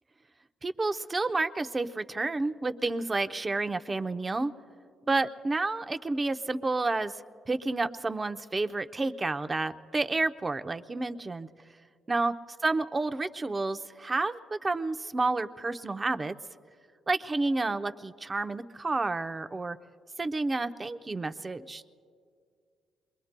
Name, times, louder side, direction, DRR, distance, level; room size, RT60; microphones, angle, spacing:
voice 1, 0.6-4.5 5.1-7.2 7.5-11.5 12.1-12.3 12.6-16.4 17.1-19.8 20.2-21.9, right 3 dB, 25° right, 9 dB, 0.6 m, -30 dB
28.5 x 22.5 x 2.2 m, 2.2 s
cardioid pair, 90°, 0 cm